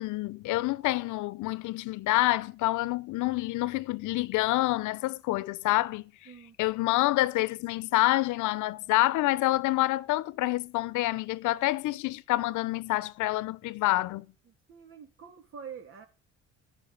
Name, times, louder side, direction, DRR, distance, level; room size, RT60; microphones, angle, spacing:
voice 1, 0.0-6.1 6.6-14.3, left 18 dB, 85° left, 0.8 m, -27 dB
voice 2, 6.2-6.6 14.4-16.1, right 7 dB, 45° right, 3.1 m, -46 dB
15.0 x 5.9 x 9.5 m
cardioid pair, 135°, 29 cm